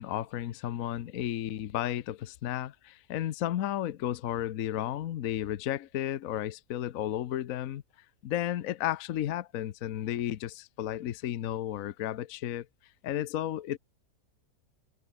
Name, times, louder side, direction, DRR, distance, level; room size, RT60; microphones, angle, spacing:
voice 1, 0.0-7.8 8.2-12.7 13.0-13.8, left 12 dB, 65° left, 1.1 m, -33 dB
omnidirectional pair, 1.7 m